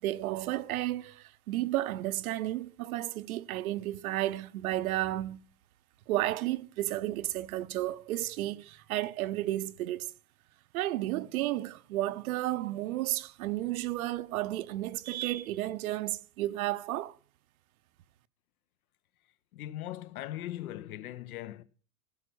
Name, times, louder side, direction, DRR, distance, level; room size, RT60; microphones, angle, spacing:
voice 1, 0.0-5.4 6.1-10.1 10.7-17.2, right 15 dB, 70° right, 0.8 m, -32 dB
voice 2, 19.5-21.6, left 13 dB, 75° left, 1.0 m, -39 dB
17.0 x 5.7 x 6.1 m
supercardioid pair, 175°, 44 cm